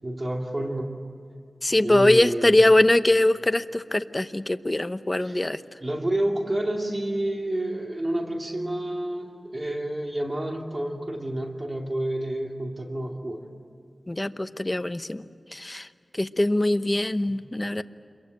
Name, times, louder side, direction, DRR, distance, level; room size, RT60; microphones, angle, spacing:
voice 1, 0.0-0.9 1.8-2.6 5.2-5.4 5.8-13.5, right 1 dB, 35° right, 2 dB, 2.5 m, -29 dB
voice 2, 1.6-5.6 14.1-15.2 15.5-15.9 16.2-17.8, left 1 dB, 25° left, 11 dB, 0.8 m, -22 dB
27.5 x 22.5 x 9.1 m, 2.3 s
wide cardioid pair, 65°, 0 cm